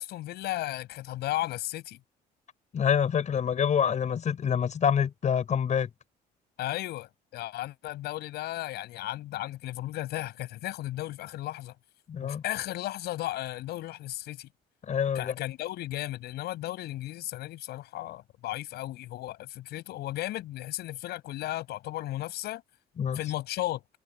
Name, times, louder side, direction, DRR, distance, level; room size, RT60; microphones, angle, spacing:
voice 1, 0.0-2.0 6.6-11.7 12.2-14.5 15.1-22.6 23.1-23.8, left 15 dB, 75° left, 6.7 m, -35 dB
voice 2, 2.7-5.9 12.1-12.4 14.9-15.3 23.0-23.2, left 8 dB, 45° left, 6.1 m, -26 dB
cardioid pair, 110°, 17 cm